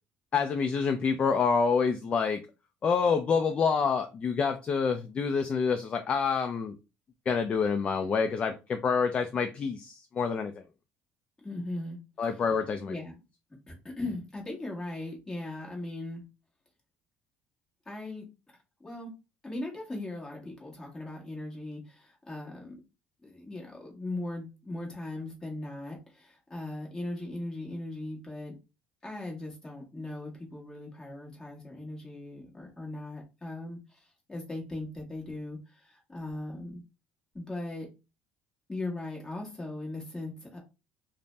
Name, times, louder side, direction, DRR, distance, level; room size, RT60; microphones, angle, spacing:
voice 1, 0.3-2.4 2.8-6.7 7.3-10.5 12.2-12.9, left 5 dB, 30° left, 7 dB, 0.3 m, -27 dB
voice 2, 11.4-12.0 12.3-12.4 12.9-13.2 13.7-16.2 17.8-18.3 18.8-19.1 19.4-22.8 23.2-28.5 29.0-36.8 37.3-37.9 38.7-40.6, left 2 dB, 15° left, -2 dB, 1.2 m, -39 dB
2.6 x 2.0 x 3.2 m, 0.28 s
cardioid pair, 125°, 4 cm